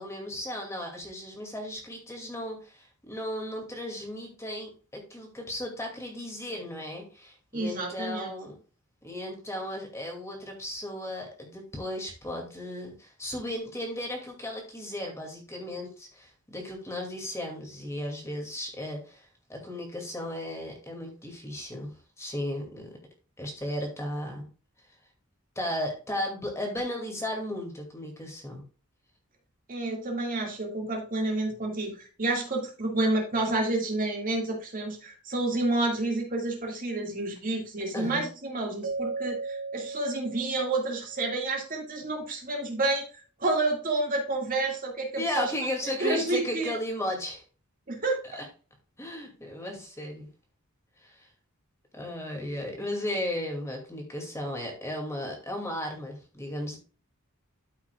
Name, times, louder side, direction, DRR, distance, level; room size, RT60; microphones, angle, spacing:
voice 1, 0.0-8.6 9.0-22.9 23.4-24.5 25.6-28.6 37.9-38.2 45.2-47.4 48.3-48.4 49.0-50.3 51.0-51.3 51.9-56.8, left 1 dB, 15° left, 1 dB, 2.2 m, -35 dB
voice 2, 7.5-8.3 29.7-45.5 45.8-46.7 47.9-48.4, right 2 dB, 40° right, 1 dB, 1.9 m, -29 dB
Keyboard (musical), 38.8-41.3, right 3 dB, 85° right, 1.9 m, -36 dB
12.5 x 5.8 x 2.3 m, 0.36 s
head